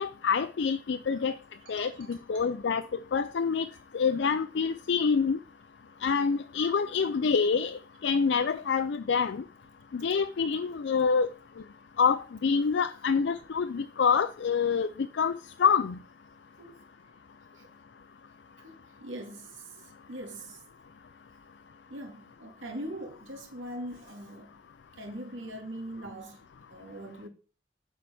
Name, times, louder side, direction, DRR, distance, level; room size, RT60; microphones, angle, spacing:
voice 1, 0.0-1.3 1.7-2.8 3.1-3.7 3.9-5.4 6.0-9.4 9.9-11.3 12.0-14.9 15.2-15.3 15.6-16.0, left 5 dB, 65° left, 0.4 m, -26 dB
voice 2, 1.6-2.5 16.6-16.8 17.5-17.7 18.6-19.6 20.1-20.6 21.9-24.6 25.0-26.4 26.7-27.3, right 1 dB, 90° right, 2.1 m, -42 dB
7.0 x 4.7 x 6.9 m
head